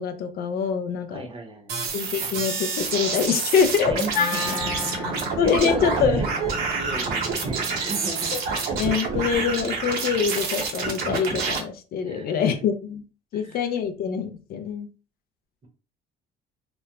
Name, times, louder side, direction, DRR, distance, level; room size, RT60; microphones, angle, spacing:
voice 1, 0.0-1.3 1.9-3.9 5.4-6.2 8.8-13.0 13.3-14.9, left 6 dB, 65° left, 8 dB, 0.4 m, -24 dB
voice 2, 1.1-1.9 2.2-2.3 3.9-6.3 6.7-8.7 12.0-12.6 13.3-13.6, right 2 dB, 30° right, 3 dB, 0.7 m, -35 dB
sound 1, 1.7-11.6, right 4 dB, 65° right, 0.7 m, -28 dB
Bowed string instrument, 3.6-8.3, left 3 dB, 35° left, 0.9 m, -45 dB
Wind instrument woodwind instrument, 4.1-8.4, left 5 dB, 85° left, 0.8 m, -33 dB
2.9 x 2.1 x 2.3 m, 0.36 s
cardioid pair, 110°, 17 cm